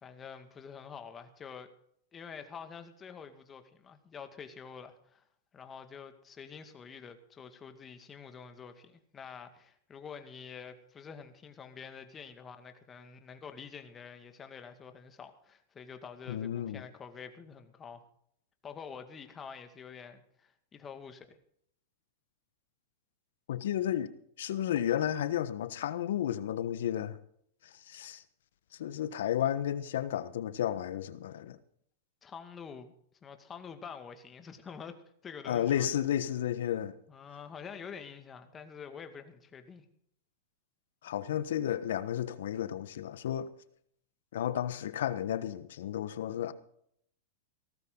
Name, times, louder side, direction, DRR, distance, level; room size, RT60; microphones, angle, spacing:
voice 1, 0.0-1.7 2.1-5.2 5.5-18.0 18.6-21.3 32.2-32.9 33.2-35.0 35.2-35.9 37.1-39.9, left 6 dB, 20° left, 2.1 m, -47 dB
voice 2, 16.3-16.8 23.5-24.1 24.4-27.2 27.6-28.2 28.8-31.6 35.4-37.0 41.0-43.5 44.3-46.5, left 10 dB, 80° left, 1.3 m, -32 dB
17.5 x 14.0 x 4.0 m
hypercardioid pair, 130°, 0 cm